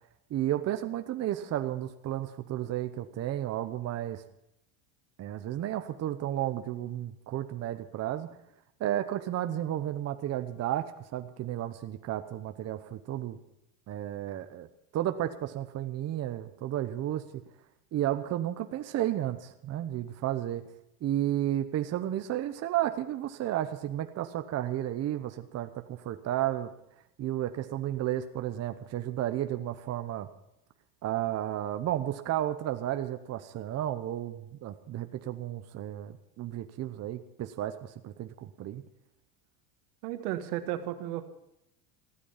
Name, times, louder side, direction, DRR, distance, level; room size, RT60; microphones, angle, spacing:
voice 1, 0.3-4.2 5.2-8.3 8.8-13.4 13.9-14.7 14.9-17.2 17.9-20.6 21.0-26.7 27.2-30.3 31.0-38.8, right 12 dB, 35° right, 8 dB, 0.9 m, -32 dB
voice 2, 40.0-41.3, right 13 dB, 75° right, 8 dB, 1.7 m, -34 dB
15.5 x 12.5 x 5.7 m, 0.82 s
supercardioid pair, 125°, 45 cm